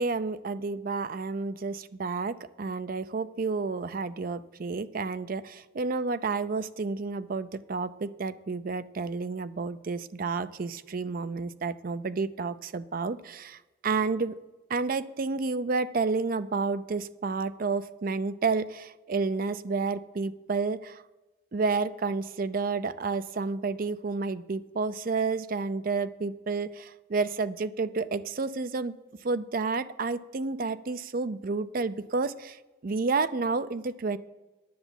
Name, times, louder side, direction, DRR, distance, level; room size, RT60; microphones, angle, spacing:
voice 1, 0.0-14.3 14.7-21.0 21.5-28.9 29.2-32.6 32.8-34.2, right 4 dB, 45° right, 13 dB, 0.5 m, -30 dB
10.5 x 7.0 x 7.1 m, 1.1 s
head